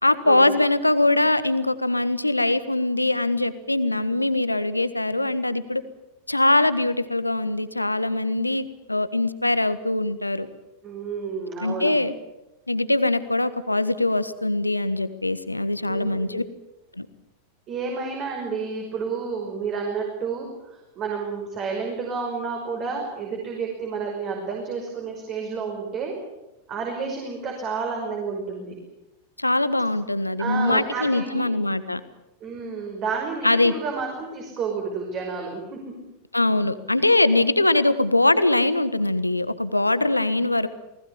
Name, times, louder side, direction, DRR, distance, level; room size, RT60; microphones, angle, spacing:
voice 1, 0.0-5.8 6.3-10.5 11.6-12.1 12.7-16.4 17.0-17.1 29.4-32.0 33.4-33.7 36.3-40.7, left 2 dB, 85° left, 14 dB, 1.4 m, -22 dB
voice 2, 10.8-12.0 15.9-16.4 17.7-26.1 26.7-28.7 30.4-31.5 32.4-36.0, right 5 dB, 35° right, 1 dB, 5.6 m, -30 dB
28.5 x 19.5 x 7.2 m, 0.96 s
figure-of-eight pair, 90°, 0 cm